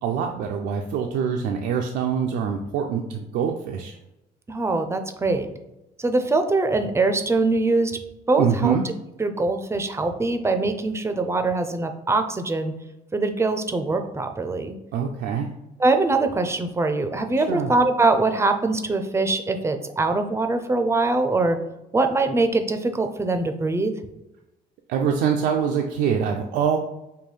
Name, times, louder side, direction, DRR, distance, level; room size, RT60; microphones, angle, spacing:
voice 1, 0.0-4.0 8.4-8.9 14.9-15.5 17.4-17.7 24.9-26.8, right 7 dB, 85° right, 3 dB, 0.4 m, -24 dB
voice 2, 4.5-5.5 6.0-8.0 8.3-8.7 9.2-12.7 13.1-14.7 15.8-21.6 21.9-23.9, right 3 dB, 15° right, 7 dB, 0.4 m, -23 dB
5.4 x 2.2 x 3.2 m, 0.94 s
cardioid pair, 95°, 17 cm